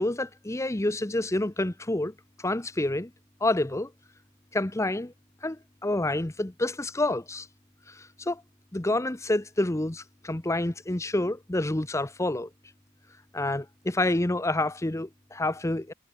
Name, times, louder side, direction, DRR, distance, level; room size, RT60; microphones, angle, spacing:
voice 1, 0.0-3.1 3.4-3.9 4.5-5.1 5.4-7.5 7.9-8.4 8.7-12.5 13.3-15.9, left 1 dB, 15° left, 0.7 m, -28 dB
head